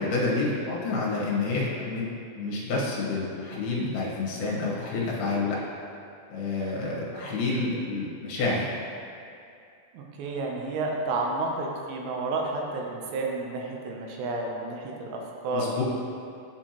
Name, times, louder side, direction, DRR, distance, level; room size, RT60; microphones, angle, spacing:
voice 1, 0.0-2.1 2.4-5.6 6.3-8.7 15.5-15.8, left 3 dB, 70° left, -6 dB, 3.0 m, -28 dB
voice 2, 9.9-15.7, right 3 dB, 90° right, 0 dB, 2.9 m, -31 dB
10.5 x 4.4 x 2.9 m, 2.5 s
omnidirectional pair, 4.8 m